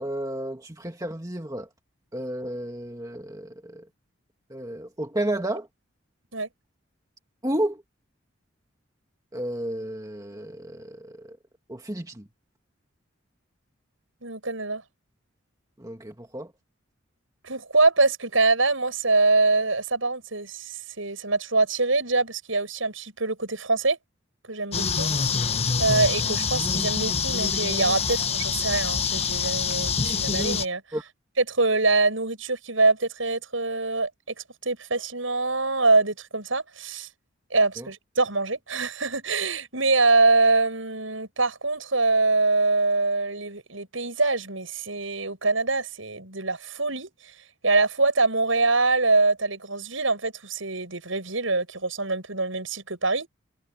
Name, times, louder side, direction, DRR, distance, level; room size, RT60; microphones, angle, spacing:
voice 1, 0.0-1.7 2.1-3.9 4.5-5.7 7.4-7.8 9.3-11.4 11.7-12.3 15.8-16.5 30.9-31.0 37.8-37.9, right 1 dB, 15° right, 2.0 m, -32 dB
voice 2, 14.2-14.8 17.4-24.0 24.5-25.1 25.8-30.8 31.4-34.3 34.6-37.1 37.5-47.3 47.6-53.3, right 3 dB, 75° right, 7.6 m, -24 dB
sound 1, 24.7-30.7, left 5 dB, 30° left, 1.0 m, -26 dB
head